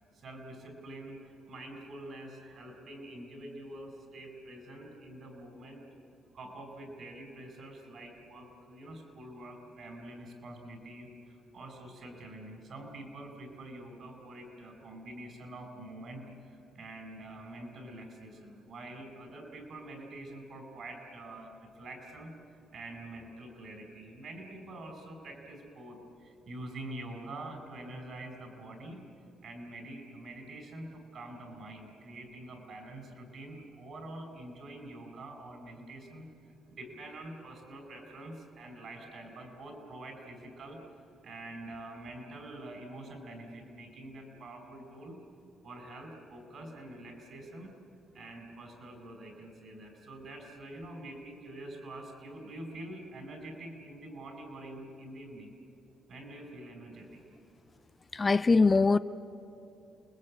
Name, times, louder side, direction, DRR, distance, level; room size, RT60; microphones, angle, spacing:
voice 1, 0.2-5.8 6.3-22.3 22.7-29.0 29.4-36.3 36.7-40.8 41.2-45.2 45.6-47.7 48.1-55.5 56.1-57.2, right 1 dB, 55° right, 5.4 m, -46 dB
voice 2, 58.1-59.0, left 4 dB, 30° left, 0.5 m, -22 dB
29.0 x 20.5 x 8.7 m
cardioid pair, 90°, 0 cm